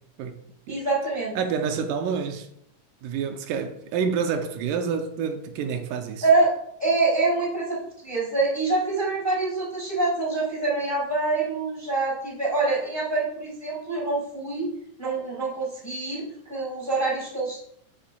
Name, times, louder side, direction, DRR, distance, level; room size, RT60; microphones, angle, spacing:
voice 1, 0.7-1.3 6.2-6.5 6.8-14.7 15.0-17.6, right 3 dB, 5° left, 2.4 m, -25 dB
voice 2, 1.4-2.5 3.0-6.2, right 6 dB, 85° right, 2.3 m, -28 dB
7.6 x 6.9 x 2.3 m
omnidirectional pair, 3.7 m